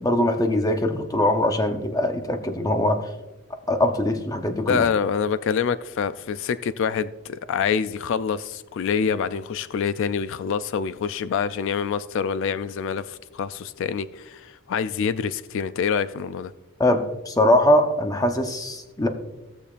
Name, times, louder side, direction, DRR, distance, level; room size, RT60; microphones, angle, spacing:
voice 1, 0.0-3.0 3.7-4.8 16.8-19.1, left 1 dB, 15° left, 6 dB, 0.7 m, -22 dB
voice 2, 4.7-16.5, left 6 dB, 60° left, 14 dB, 0.3 m, -26 dB
16.5 x 6.7 x 2.5 m, 1.1 s
head